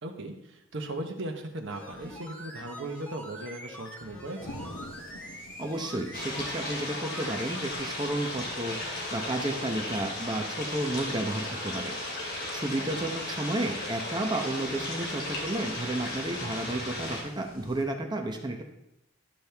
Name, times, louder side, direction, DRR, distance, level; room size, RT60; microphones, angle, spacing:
voice 1, 0.0-4.7, right 1 dB, 60° right, 3 dB, 1.1 m, -38 dB
sound 1, 1.7-7.7 8.0-8.1, equal, 10° left, 1.2 m, -44 dB
sound 2, 4.4-17.8, left 1 dB, 80° left, 1.3 m, -49 dB
voice 2, 5.6-8.8 9.1-18.6, right 1 dB, 20° right, 4 dB, 0.9 m, -32 dB
sound 3, 6.1-17.2, left 1 dB, 55° left, 2.7 m, -35 dB
11.5 x 6.2 x 3.5 m, 0.85 s
head